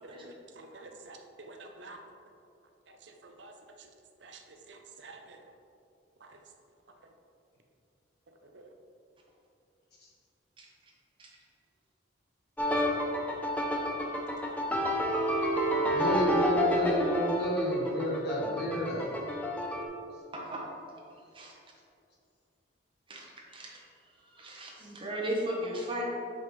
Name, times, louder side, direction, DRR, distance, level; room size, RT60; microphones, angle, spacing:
voice 1, 0.0-2.0 3.0-3.5 3.8-3.9 4.2-4.4 4.7-5.4 6.2-6.4 8.4-8.7 14.4-14.6, right 3 dB, 65° right, 4 dB, 0.6 m, -49 dB
sound 1, 12.6-19.8, equal, 10° left, 0.5 m, -29 dB
voice 2, 15.9-19.1, equal, 55° left, -4 dB, 1.5 m, -30 dB
voice 3, 20.3-20.6 21.3-21.5 23.1-23.9 24.3-26.0, right 1 dB, 25° right, -2 dB, 1.0 m, -36 dB
7.4 x 5.2 x 3.2 m, 2.5 s
head